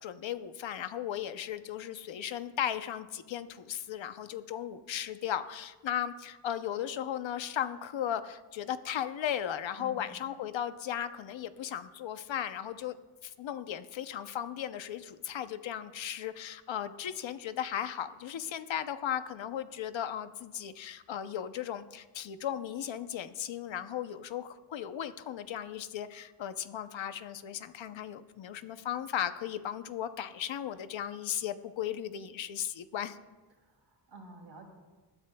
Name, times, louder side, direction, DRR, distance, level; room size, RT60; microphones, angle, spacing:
voice 1, 0.0-12.9 13.2-33.2, left 10 dB, 75° left, 11 dB, 0.7 m, -36 dB
voice 2, 9.8-10.1 33.6-34.7, right 2 dB, 60° right, 1 dB, 2.8 m, -51 dB
21.0 x 12.5 x 2.2 m, 1.2 s
wide cardioid pair, 180°, 46 cm